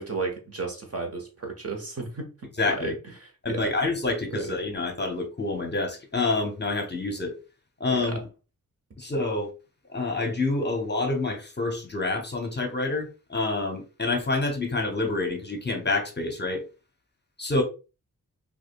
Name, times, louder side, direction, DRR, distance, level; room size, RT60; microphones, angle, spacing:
voice 1, 0.0-2.9 3.2-3.7 4.3-4.6 7.9-8.2, right 4 dB, 40° right, 1.2 m, -34 dB
voice 2, 2.6-2.9 3.4-7.3 7.8-8.2 9.0-9.5 9.9-16.7 17.4-17.6, left 3 dB, 30° left, 0.8 m, -27 dB
4.8 x 2.4 x 2.2 m
cardioid pair, 70°, 36 cm